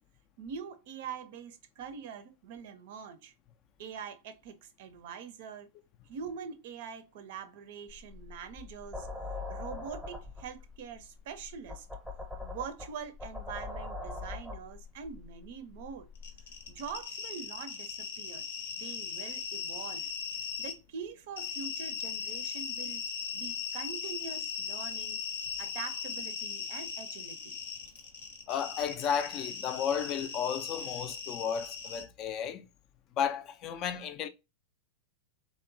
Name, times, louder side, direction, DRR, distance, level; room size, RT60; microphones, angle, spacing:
voice 1, 0.4-3.3 3.8-5.7 6.1-9.1 9.5-11.9 12.4-16.1 16.7-18.4 18.8-20.1 20.6-23.0 23.3-25.2 25.6-27.6, right 6 dB, 60° right, 0.5 m, -44 dB
sound 1, 7.9-17.0, left 3 dB, ahead, 0.7 m, -43 dB
sound 2, 16.2-20.7 21.4-32.0, left 6 dB, 75° left, 0.7 m, -38 dB
voice 2, 28.5-32.7 33.1-34.3, left 8 dB, 40° left, 0.3 m, -33 dB
2.9 x 2.0 x 2.5 m
hypercardioid pair, 100°, 0 cm